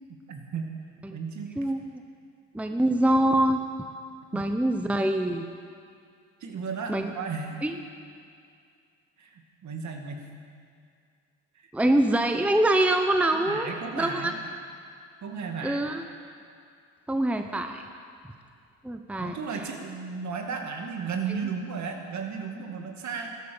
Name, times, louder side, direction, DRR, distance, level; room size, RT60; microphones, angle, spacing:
voice 1, 0.3-0.7 1.1-1.5 4.3-4.4 6.4-7.6 9.2-10.3 11.6-11.7 13.5-14.4 15.2-15.9 19.2-23.3, right 5 dB, 50° right, 3 dB, 2.3 m, -34 dB
voice 2, 1.6-2.0 2.5-3.6 4.3-5.4 6.9-7.1 7.6-7.8 11.7-13.7 13.9-14.3 15.6-16.0 17.1-17.8 18.8-19.4, right 1 dB, 5° right, 6 dB, 0.9 m, -24 dB
13.0 x 12.0 x 7.1 m, 2.3 s
hypercardioid pair, 65°, 36 cm